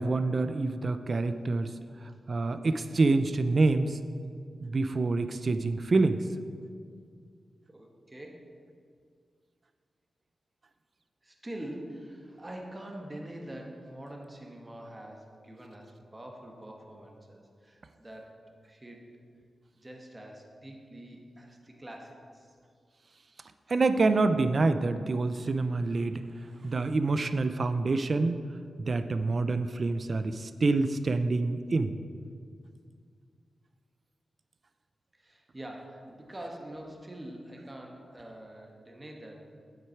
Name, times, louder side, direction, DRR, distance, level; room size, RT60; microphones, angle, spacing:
voice 1, 0.0-1.7 2.3-4.0 4.6-6.2 23.7-26.2 26.6-28.4 28.8-32.0, right 3 dB, 50° right, 10 dB, 0.5 m, -27 dB
voice 2, 1.8-2.2 7.7-8.5 11.2-18.4 18.6-19.0 19.8-22.6 35.1-39.5, right 1 dB, 20° right, 1 dB, 1.5 m, -45 dB
9.2 x 8.1 x 4.6 m, 2.1 s
wide cardioid pair, 90°, 0 cm